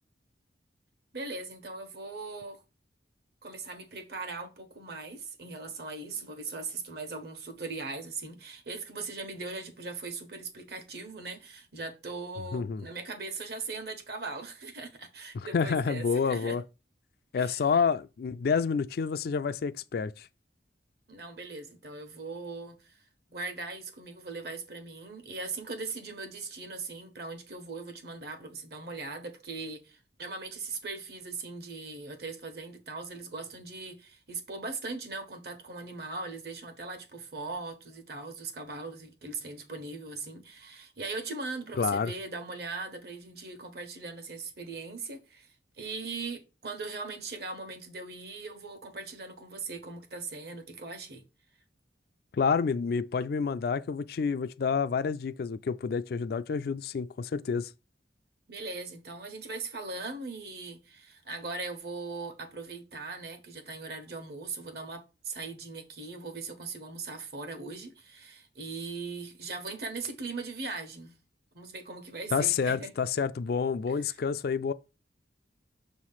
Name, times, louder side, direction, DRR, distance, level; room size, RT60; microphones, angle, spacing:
voice 1, 1.1-2.6 3.4-16.6 17.4-17.6 21.1-23.0 23.3-45.5 45.8-51.2 58.5-71.1 71.5-72.9 74.0-74.1, right 3 dB, 55° right, 1.2 m, -39 dB
voice 2, 12.5-12.9 15.3-16.6 17.3-20.3 41.8-42.1 52.3-57.7 72.3-74.7, left 5 dB, 55° left, 0.3 m, -29 dB
6.6 x 3.1 x 5.6 m
head